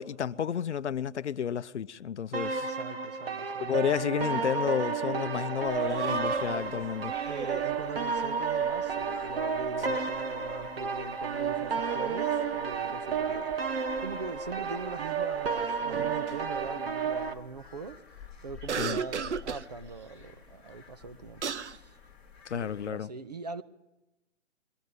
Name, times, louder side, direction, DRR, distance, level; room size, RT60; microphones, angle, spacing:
voice 1, 0.0-2.7 3.6-7.1 18.8-19.0 22.5-23.1, left 8 dB, 65° left, 0.7 m, -31 dB
sound 1, 2.3-17.3, right 6 dB, 50° right, 1.2 m, -32 dB
voice 2, 2.6-3.8 7.2-22.0 22.5-23.6, right 4 dB, 35° right, 0.7 m, -42 dB
sound 2, 4.3-4.4 4.7-4.8 5.8-7.8 11.3-12.9 13.3-14.2 15.9-16.3 18.6-19.7 21.0-21.1 21.4-21.8, right 6 dB, 65° right, 1.0 m, -36 dB
sound 3, 5.6-22.9, left 7 dB, ahead, 0.9 m, -52 dB
22.0 x 15.0 x 9.4 m
hypercardioid pair, 170°, 37 cm